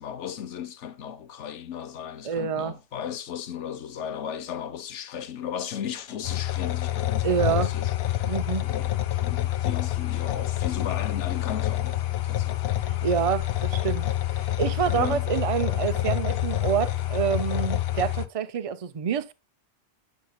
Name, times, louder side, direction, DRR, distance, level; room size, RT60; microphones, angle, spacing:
voice 1, 0.0-9.0 9.2-13.1 14.9-15.3, left 9 dB, 85° left, 1.1 m, -36 dB
voice 2, 2.2-2.7 7.2-7.7 8.3-8.6 12.8-14.1 14.6-19.3, right 8 dB, 40° right, 0.5 m, -27 dB
sound 1, 6.2-18.3, left 13 dB, 65° left, 0.8 m, -27 dB
8.2 x 6.6 x 2.2 m
omnidirectional pair, 1.2 m